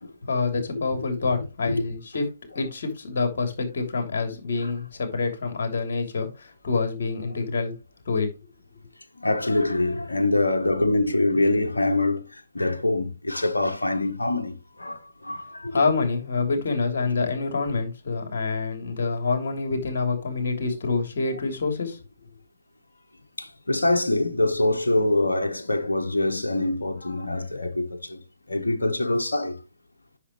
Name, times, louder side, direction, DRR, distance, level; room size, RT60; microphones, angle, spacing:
voice 1, 0.3-2.3 2.5-7.7 8.0-8.3 15.7-22.0, left 4 dB, 60° left, 3.0 m, -26 dB
voice 2, 9.2-15.8 23.4-28.2 28.5-29.6, left 2 dB, 80° left, 1.1 m, -24 dB
9.8 x 6.3 x 3.1 m
figure-of-eight pair, 130°, 0 cm